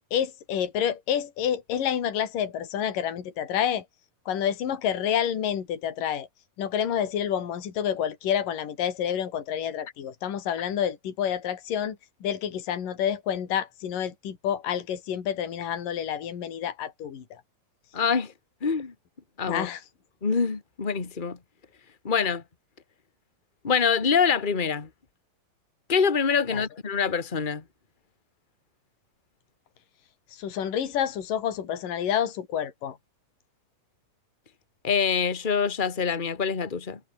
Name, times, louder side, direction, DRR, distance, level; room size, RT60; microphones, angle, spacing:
voice 1, 0.1-3.9 4.3-6.3 6.6-17.4 19.5-19.8 26.5-26.6 30.4-33.0, left 9 dB, 65° left, 4.4 m, -28 dB
voice 2, 17.9-18.3 18.6-18.9 19.4-19.7 20.2-21.4 22.0-22.4 23.6-24.9 25.9-27.6 34.8-37.0, left 6 dB, 30° left, 0.9 m, -25 dB
omnidirectional pair, 4.3 m